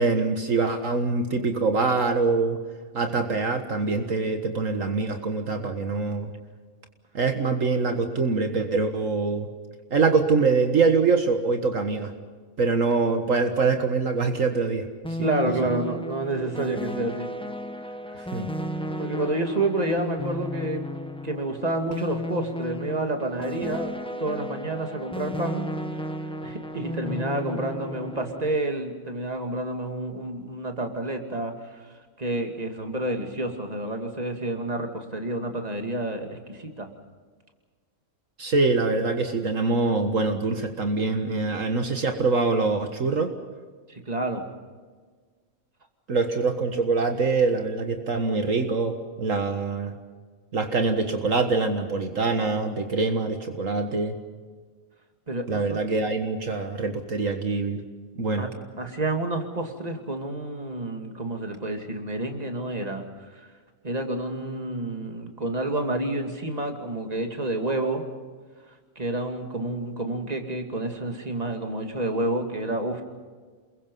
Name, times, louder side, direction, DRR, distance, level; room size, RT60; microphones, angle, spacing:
voice 1, 0.0-2.6 2.9-6.3 7.1-9.5 9.9-12.1 12.6-14.9 15.2-15.3 18.3-18.5 38.4-43.3 46.1-49.9 50.5-54.2 55.5-57.8 58.2-58.5, right 4 dB, 65° right, 6 dB, 2.0 m, -24 dB
sound 1, 15.0-28.6, left 1 dB, 5° left, 1.2 m, -34 dB
voice 2, 15.2-17.3 19.0-20.8 21.2-25.6 26.4-31.5 32.2-36.9 43.9-44.4 55.3-55.8 58.4-58.5 58.8-63.0 63.8-68.0 69.0-73.0, right 2 dB, 30° right, 4 dB, 2.6 m, -29 dB
28.5 x 22.0 x 5.5 m, 1.5 s
omnidirectional pair, 1.5 m